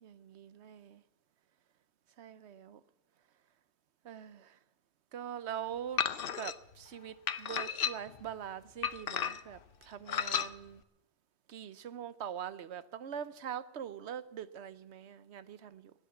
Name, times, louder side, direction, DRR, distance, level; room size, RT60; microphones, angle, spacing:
voice 1, 0.0-1.0 2.2-2.8 4.0-4.6 5.1-6.0 6.4-10.8 11.5-15.9, right 9 dB, 85° right, 1.0 m, -43 dB
sound 1, 6.0-6.5 7.3-8.2 8.8-9.6 10.1-10.5, left 8 dB, 60° left, 0.9 m, -33 dB
17.0 x 10.5 x 7.1 m
omnidirectional pair, 1.1 m